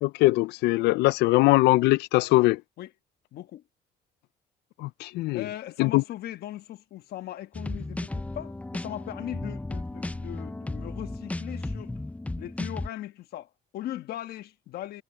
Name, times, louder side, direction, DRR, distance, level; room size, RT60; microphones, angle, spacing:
voice 1, 0.0-2.6 4.8-5.4 5.8-6.0, left 19 dB, 85° left, 0.5 m, -21 dB
voice 2, 3.3-3.6 5.3-12.0 12.4-15.0, left 13 dB, 70° left, 1.3 m, -39 dB
sound 1, 7.5-12.9, left 2 dB, 10° left, 0.6 m, -34 dB
cardioid pair, 110°, 17 cm